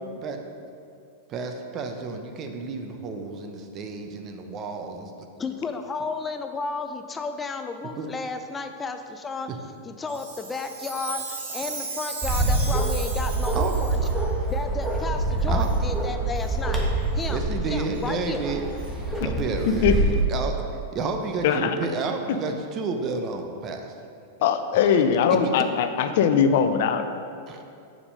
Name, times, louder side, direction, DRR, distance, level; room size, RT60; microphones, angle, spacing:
voice 1, 1.3-5.1 8.0-8.1 9.5-9.6 13.5-13.7 14.0-14.3 15.5-15.7 17.3-18.6 19.2-20.6 20.9-23.9 27.5-27.6, right 4 dB, 35° right, 5 dB, 0.8 m, -31 dB
voice 2, 5.4-9.5 9.8-14.0 14.5-16.8 17.1-18.4, left 4 dB, 20° left, 7 dB, 0.5 m, -33 dB
Chime, 10.1-14.2 14.8-14.9 15.6-15.8 16.3-16.5 17.2-17.3 17.9-18.0 18.8-18.9, right 4 dB, 80° right, 1.6 m, -36 dB
Bark, 12.2-20.2, right 2 dB, 5° right, 1.3 m, -26 dB
voice 3, 19.7-20.0 21.4-21.8 22.3-22.4 24.4-27.1, left 7 dB, 65° left, 8 dB, 0.5 m, -21 dB
6.9 x 5.2 x 5.3 m, 2.5 s
hypercardioid pair, 110°, 0 cm